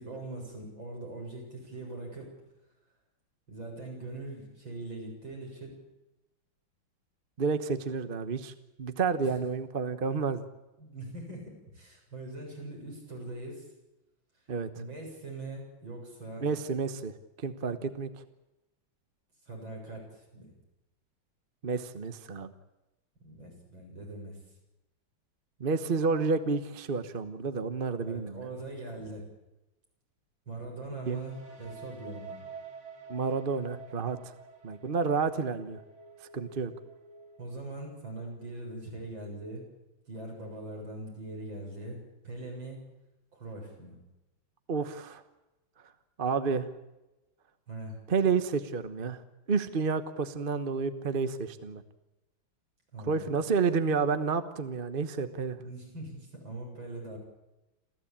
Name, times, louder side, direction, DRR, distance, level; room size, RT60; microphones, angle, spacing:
voice 1, 0.0-2.3 3.5-5.8 9.2-9.3 10.8-13.7 14.7-16.5 19.5-20.5 23.2-24.4 28.0-29.2 30.5-32.4 37.4-39.6 40.1-42.8 43.3-44.0 47.7-48.0 52.9-53.3 55.6-57.2, right 2 dB, 70° right, 0 dB, 8.0 m, -41 dB
voice 2, 7.4-8.5 8.8-10.4 14.5-14.7 16.4-17.1 17.4-18.1 21.6-22.5 25.6-28.5 31.1-31.2 33.1-34.3 34.6-35.8 36.3-36.7 44.7-45.2 46.2-46.7 48.1-49.2 49.5-51.8 53.1-55.6, right 5 dB, 35° right, 10 dB, 1.0 m, -30 dB
sound 1, 31.0-38.8, right 4 dB, 85° right, 4.0 m, -49 dB
27.5 x 15.0 x 8.7 m, 0.99 s
omnidirectional pair, 2.2 m